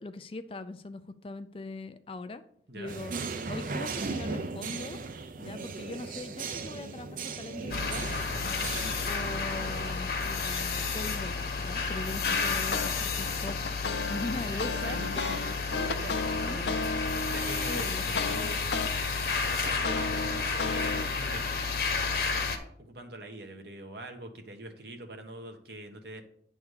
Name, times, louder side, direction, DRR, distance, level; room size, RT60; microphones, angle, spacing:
voice 1, 0.0-2.4 2.7-3.1 3.5-5.0 5.4-8.1 8.8-13.7 14.1-15.0 16.4-16.6 17.7-18.4, left 2 dB, 30° left, 10 dB, 0.4 m, -40 dB
sound 1, 2.9-9.9, right 4 dB, 50° right, 0.5 m, -37 dB
sound 2, 7.7-22.6, left 4 dB, 55° left, 1.2 m, -31 dB
sound 3, 12.2-12.9 13.3-18.9 19.3-21.0, left 4 dB, 80° left, 0.7 m, -33 dB
voice 2, 14.5-18.7 19.2-21.8 22.8-26.2, right 1 dB, 70° right, 5 dB, 1.3 m, -43 dB
9.5 x 3.6 x 6.4 m, 0.65 s
head